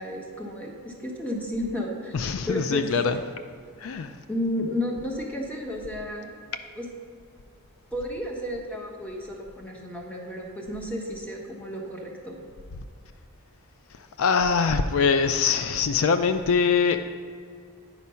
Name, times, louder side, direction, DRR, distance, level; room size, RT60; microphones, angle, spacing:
voice 1, 0.0-2.1 2.5-2.9 4.3-6.3 6.7-6.9 7.9-12.4, left 1 dB, 5° left, -1 dB, 1.1 m, -32 dB
voice 2, 2.1-3.2 3.8-4.1 14.2-17.0, left 5 dB, 65° left, 9 dB, 0.4 m, -23 dB
9.5 x 5.1 x 5.6 m, 2.2 s
head